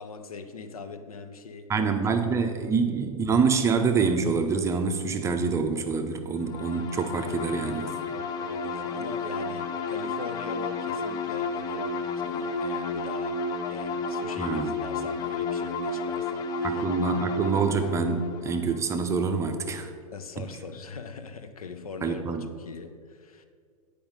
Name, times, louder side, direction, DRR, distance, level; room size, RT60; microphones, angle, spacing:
voice 1, 0.0-2.0 8.1-16.8 20.1-23.5, left 5 dB, 70° left, 9 dB, 0.8 m, -41 dB
voice 2, 1.7-8.0 14.4-14.8 16.6-19.9 22.0-22.4, right 5 dB, 15° right, 6 dB, 0.6 m, -26 dB
sound 1, 6.4-19.9, left 3 dB, 20° left, 0.4 m, -32 dB
8.6 x 5.0 x 5.2 m, 2.1 s
figure-of-eight pair, 105°, 19 cm